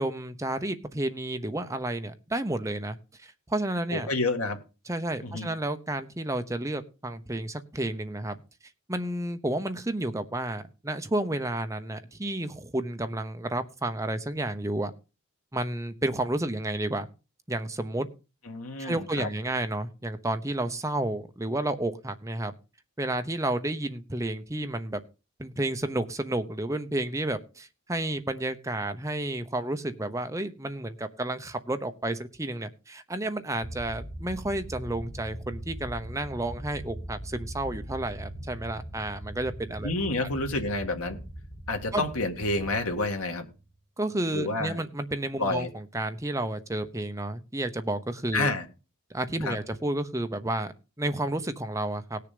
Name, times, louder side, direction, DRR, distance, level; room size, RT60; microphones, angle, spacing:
voice 1, 0.0-4.1 4.9-8.4 8.9-14.9 15.5-17.1 17.5-18.1 18.8-22.5 23.0-25.0 25.4-39.9 40.2-40.3 41.9-42.0 44.0-48.5 49.1-52.2, right 1 dB, 15° right, 8 dB, 0.9 m, -31 dB
voice 2, 3.9-4.6 5.2-5.5 18.5-19.3 39.8-41.2 41.7-43.5 44.3-44.8 45.4-45.7 48.3-48.6 49.4-49.6, left 2 dB, 80° left, 4 dB, 2.0 m, -29 dB
sound 1, 33.6-43.7, right 1 dB, 40° left, 7.2 m, -41 dB
18.5 x 6.7 x 5.2 m, 0.32 s
head